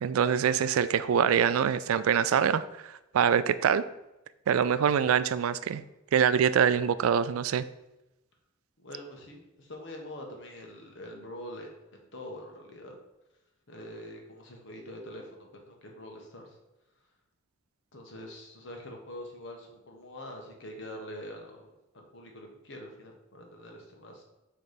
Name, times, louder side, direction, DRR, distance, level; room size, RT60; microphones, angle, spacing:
voice 1, 0.0-3.9 4.5-5.8 6.1-7.7, right 8 dB, 85° right, 15 dB, 0.3 m, -25 dB
voice 2, 8.8-11.7 12.1-12.9 13.7-16.6 17.9-24.2, left 1 dB, 60° left, 1 dB, 1.3 m, -44 dB
6.6 x 3.3 x 5.1 m, 0.96 s
head